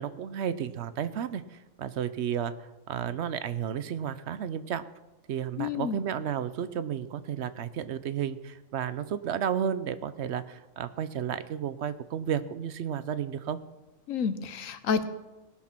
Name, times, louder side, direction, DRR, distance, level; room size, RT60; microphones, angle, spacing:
voice 1, 0.0-2.5 2.9-4.8 5.3-13.6, right 8 dB, 65° right, 13 dB, 0.8 m, -32 dB
voice 2, 5.6-6.0 14.1-15.0, left 6 dB, 80° left, 11 dB, 1.2 m, -29 dB
18.5 x 6.4 x 5.9 m, 1.1 s
omnidirectional pair, 1.4 m